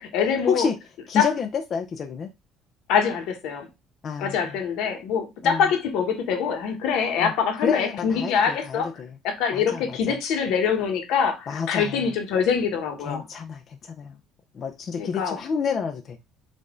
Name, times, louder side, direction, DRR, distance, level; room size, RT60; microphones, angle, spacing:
voice 1, 0.1-0.7 1.2-1.3 2.9-3.7 4.2-8.9 9.2-13.2 15.0-15.4, left 6 dB, 80° left, 1.2 m, -24 dB
voice 2, 1.1-2.3 4.0-4.6 5.4-5.7 7.2-7.3 7.6-9.2 9.5-10.2 11.5-12.1 13.0-14.2 14.5-16.2, left 6 dB, 40° left, 0.5 m, -29 dB
5.3 x 2.6 x 3.7 m
cardioid pair, 135°, 0 cm